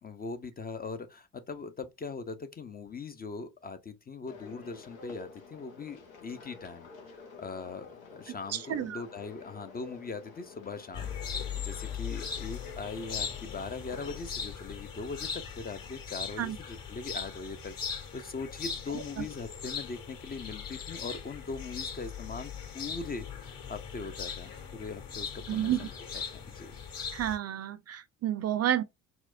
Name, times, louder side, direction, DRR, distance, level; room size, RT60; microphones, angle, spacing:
voice 1, 0.0-6.9 7.4-25.9 26.3-26.8, left 4 dB, 25° left, 0.5 m, -41 dB
sound 1, 4.3-14.2, left 4 dB, 90° left, 0.9 m, -50 dB
voice 2, 8.5-9.0 16.4-16.6 18.9-19.3 25.5-25.9 27.1-28.8, right 11 dB, 40° right, 0.5 m, -31 dB
sound 2, 10.9-27.4, left 6 dB, 55° left, 1.8 m, -39 dB
4.3 x 2.0 x 2.4 m
hypercardioid pair, 55°, 40 cm